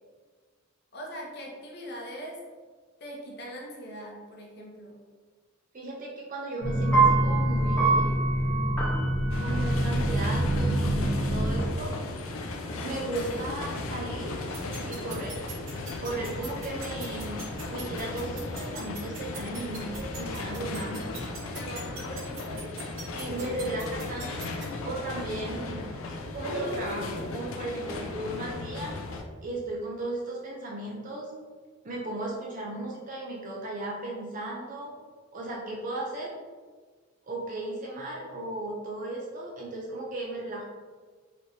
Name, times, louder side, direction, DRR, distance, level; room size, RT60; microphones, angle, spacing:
voice 1, 0.9-2.4 3.0-5.0 21.5-22.8, equal, 50° left, -2 dB, 0.8 m, -41 dB
voice 2, 5.7-8.2 9.4-11.9 12.8-14.3 14.9-15.4 16.0-17.4 17.7-21.1 23.1-24.5 24.8-25.9 26.3-28.9 29.4-31.3 31.8-34.9 35.3-36.3 37.3-40.7, right 2 dB, 40° right, -3 dB, 0.5 m, -35 dB
sound 1, 6.6-11.6, right 2 dB, 10° left, 1.0 m, -24 dB
sound 2, 9.3-29.2, left 2 dB, 75° left, 0.4 m, -36 dB
sound 3, 14.5-24.6, right 5 dB, 65° right, 0.9 m, -41 dB
4.1 x 3.1 x 2.7 m, 1.5 s
head